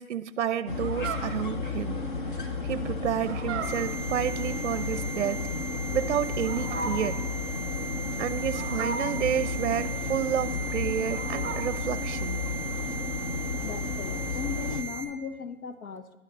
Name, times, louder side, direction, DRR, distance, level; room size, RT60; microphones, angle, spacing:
voice 1, 0.0-2.0 2.6-5.4 5.9-7.2 8.2-12.4, right 9 dB, 55° right, 15 dB, 0.5 m, -30 dB
sound 1, 0.7-14.8, left 4 dB, 35° left, 0.7 m, -33 dB
Fowl, 0.7-11.8, right 4 dB, 15° right, 0.9 m, -39 dB
sound 2, 3.6-15.0, right 3 dB, 65° left, 1.9 m, -38 dB
voice 2, 13.4-16.2, left 6 dB, 85° left, 10 dB, 0.9 m, -38 dB
11.0 x 6.5 x 5.5 m, 1.0 s
hypercardioid pair, 170°, 42 cm